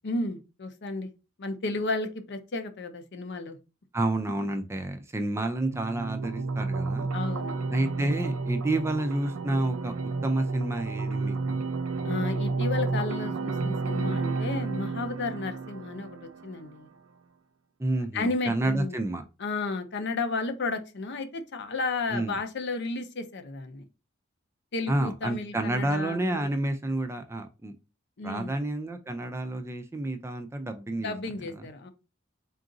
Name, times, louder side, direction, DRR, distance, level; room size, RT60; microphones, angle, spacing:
voice 1, 0.0-1.1 1.4-3.6 7.1-7.6 12.0-16.9 18.1-19.0 19.4-23.9 24.7-26.5 28.2-28.5 31.0-31.9, left 3 dB, 55° left, 8 dB, 0.6 m, -33 dB
voice 2, 3.9-7.1 7.7-9.9 10.2-11.6 17.8-19.2 22.1-22.4 24.9-27.7 28.2-31.1 31.6-31.7, right 1 dB, 15° right, 7 dB, 0.4 m, -29 dB
sound 1, 5.7-16.7, right 3 dB, 90° right, 0.5 m, -31 dB
3.8 x 2.4 x 3.8 m, 0.29 s
head